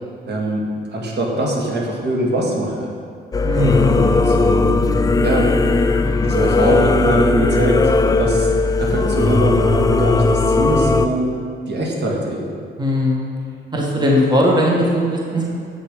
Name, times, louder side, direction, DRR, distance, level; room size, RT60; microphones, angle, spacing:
voice 1, 0.3-2.9 3.8-4.9 5.2-5.9 6.2-8.5 8.8-11.3 11.7-12.4, right 1 dB, 60° right, -1 dB, 1.9 m, -22 dB
Singing / Musical instrument, 3.3-11.1, left 3 dB, 20° left, 0.4 m, -17 dB
voice 2, 3.4-4.1 12.8-13.3 13.7-15.5, left 1 dB, 20° right, -2 dB, 1.6 m, -18 dB
7.5 x 6.9 x 5.1 m, 2.2 s
cardioid pair, 90°, 20 cm